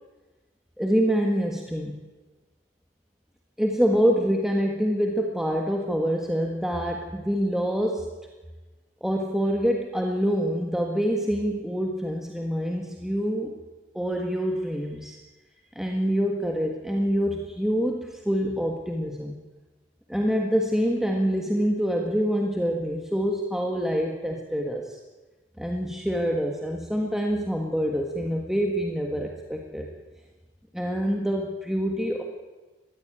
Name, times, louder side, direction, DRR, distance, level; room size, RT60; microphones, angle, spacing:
voice 1, 0.8-2.0 3.6-8.1 9.0-13.5 13.9-15.2 15.7-19.3 20.1-25.0 25.6-29.9 30.7-32.2, equal, 5° right, 1 dB, 1.6 m, -26 dB
20.5 x 14.5 x 9.0 m, 1.2 s
head